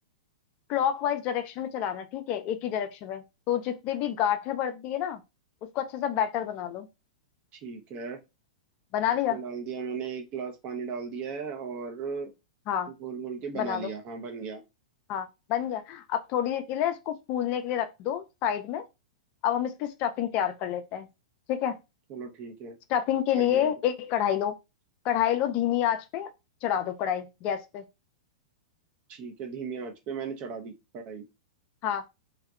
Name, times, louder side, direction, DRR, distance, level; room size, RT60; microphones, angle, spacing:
voice 1, 0.7-5.2 5.7-6.9 8.9-9.4 12.7-12.9 13.5-13.9 15.1-18.8 19.4-21.1 21.5-21.8 22.9-24.5 25.0-26.3 26.6-27.8 31.8-32.0, left 10 dB, 40° left, 0.3 m, -28 dB
voice 2, 7.5-8.2 9.3-12.3 12.9-14.6 22.1-22.8 23.3-23.7 29.1-31.3, right 5 dB, 40° right, 0.6 m, -36 dB
2.7 x 2.1 x 2.3 m
hypercardioid pair, 110°, 4 cm